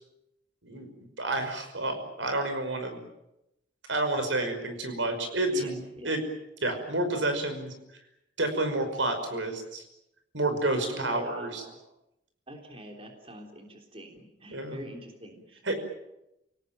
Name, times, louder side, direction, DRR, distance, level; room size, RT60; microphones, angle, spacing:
voice 1, 1.2-3.0 3.9-5.8 6.0-6.2 6.6-7.7 8.4-9.8 10.3-11.6 14.5-14.8 15.6-15.8, right 2 dB, 85° right, 7 dB, 5.5 m, -29 dB
voice 2, 5.5-6.2 10.8-11.8 12.5-15.7, right 1 dB, 30° right, 3 dB, 3.5 m, -45 dB
29.5 x 18.5 x 9.2 m, 0.89 s
head